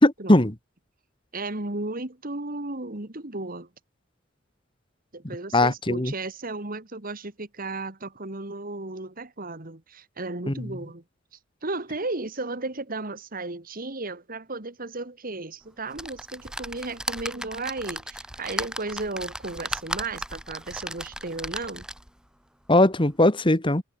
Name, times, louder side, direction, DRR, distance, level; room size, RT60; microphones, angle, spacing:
voice 1, 0.0-0.5 5.5-6.1 10.5-10.6 22.7-23.8, left 1 dB, 25° left, 2.0 m, -19 dB
voice 2, 1.3-3.7 5.1-11.0 11.6-21.9, right 2 dB, 45° right, 2.3 m, -34 dB
sound 1, 15.9-22.2 22.7-22.8 23.1-23.2, right 1 dB, 5° right, 3.0 m, -36 dB
head